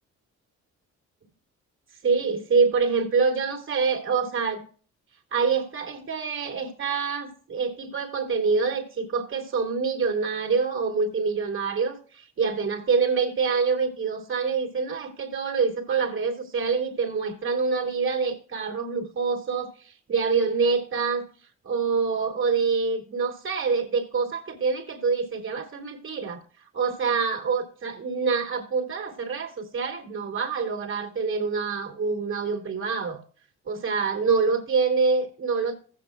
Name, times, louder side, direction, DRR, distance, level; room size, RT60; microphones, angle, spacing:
voice 1, 2.0-4.7 5.3-21.3 21.6-26.4 26.7-33.2 33.7-35.8, right 5 dB, 45° right, 2.6 m, -26 dB
15.5 x 8.1 x 2.3 m
cardioid pair, 90°, 30 cm